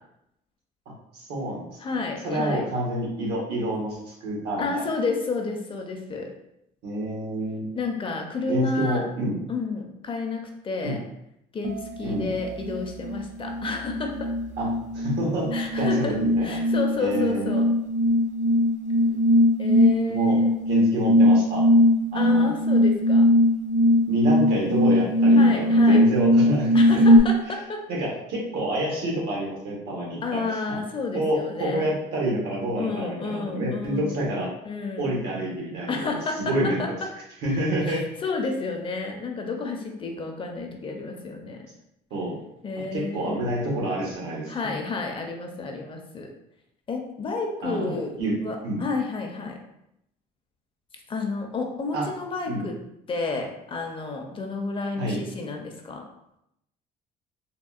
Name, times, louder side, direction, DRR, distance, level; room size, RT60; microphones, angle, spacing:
voice 1, 1.1-2.0 2.2-4.9 6.8-7.7 8.5-9.4 10.8-11.0 12.0-12.3 14.6-14.7 14.9-16.6 17.0-17.5 20.1-20.4 20.7-21.7 22.1-22.5 24.1-27.0 27.9-30.8 31.1-34.5 35.0-36.2 36.5-36.8 37.4-38.0 42.1-42.4 42.8-44.8 47.6-48.3 48.6-48.8 51.9-52.1 52.5-52.6 55.0-55.2, right 1 dB, 80° right, -3 dB, 1.1 m, -28 dB
voice 2, 1.8-2.6 4.6-6.3 7.7-9.0 9.5-11.0 11.5-14.3 15.5-17.7 19.6-20.5 22.1-23.3 25.4-26.0 26.7-27.8 30.2-31.9 32.8-34.2 34.6-35.1 35.9-36.4 36.8-36.9 37.5-41.6 42.6-43.4 44.5-46.3 46.9-48.1 48.4-49.6 51.1-52.8 53.1-56.0, left 4 dB, 30° left, 2 dB, 0.5 m, -31 dB
sound 1, 11.6-12.0 12.4-27.2, left 1 dB, 50° right, 0.5 m, -20 dB
3.6 x 2.3 x 2.4 m, 0.81 s
cardioid pair, 110°, 17 cm